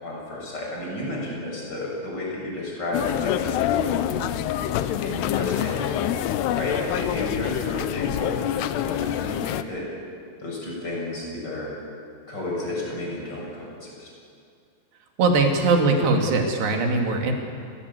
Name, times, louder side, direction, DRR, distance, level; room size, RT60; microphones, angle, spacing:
voice 1, 0.0-4.2 5.0-6.2 6.5-9.9 10.4-11.8 12.3-14.1, left 2 dB, 25° left, -3 dB, 7.4 m, -32 dB
sound 1, 2.9-9.6, left 11 dB, 85° left, 2.9 m, -26 dB
voice 2, 15.2-17.3, right 3 dB, 90° right, 2 dB, 4.6 m, -21 dB
30.0 x 17.5 x 8.4 m, 2.3 s
omnidirectional pair, 4.7 m